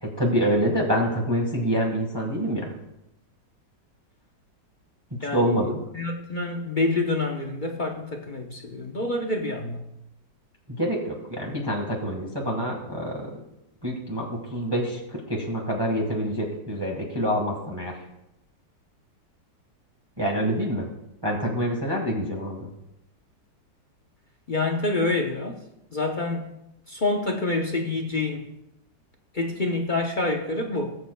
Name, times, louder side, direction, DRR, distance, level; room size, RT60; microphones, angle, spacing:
voice 1, 0.0-2.7 5.3-5.8 10.8-13.3 13.8-18.0 20.2-20.9 21.2-22.7, equal, 15° right, -1 dB, 1.5 m, -26 dB
voice 2, 5.2-5.6 5.9-9.8 24.5-25.6 25.9-26.5 26.9-28.4 29.3-30.9, left 2 dB, 45° left, 2 dB, 0.6 m, -27 dB
19.0 x 7.7 x 2.2 m, 0.86 s
omnidirectional pair, 1.9 m